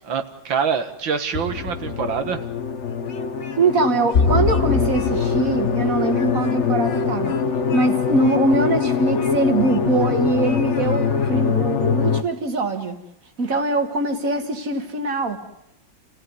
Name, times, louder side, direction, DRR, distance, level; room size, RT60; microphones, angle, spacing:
voice 1, 0.0-2.4, right 6 dB, 85° right, 2.4 m, -25 dB
sound 1, 1.3-12.2, left 6 dB, 45° left, 1.2 m, -22 dB
Speech, 2.8-3.8 4.1-5.1 5.5-5.6 6.1-10.2 10.4-11.4, left 5 dB, 75° left, 2.4 m, -42 dB
voice 2, 3.6-7.3 7.7-13.0 13.4-15.4, right 3 dB, 45° right, 2.4 m, -22 dB
29.5 x 16.0 x 9.6 m
omnidirectional pair, 2.0 m